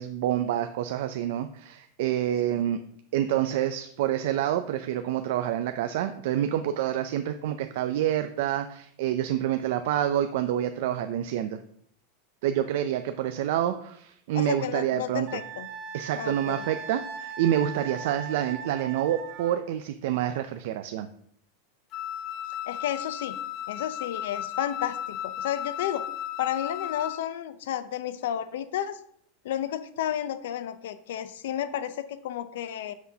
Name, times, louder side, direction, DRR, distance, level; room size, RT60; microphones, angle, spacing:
voice 1, 0.0-2.8 3.1-11.6 12.4-15.4 15.9-21.1, right 11 dB, 55° right, 8 dB, 0.4 m, -27 dB
voice 2, 14.3-15.7 16.1-16.6 22.7-23.4 23.7-26.0 26.4-29.0 29.4-32.9, left 10 dB, 75° left, 13 dB, 0.6 m, -32 dB
Wind instrument woodwind instrument, 15.3-19.6, right 6 dB, 40° right, 0.9 m, -39 dB
Wind instrument woodwind instrument 2, 21.9-27.3, left 11 dB, 30° left, 0.3 m, -35 dB
9.5 x 6.1 x 2.8 m, 0.65 s
supercardioid pair, 175°, 0 cm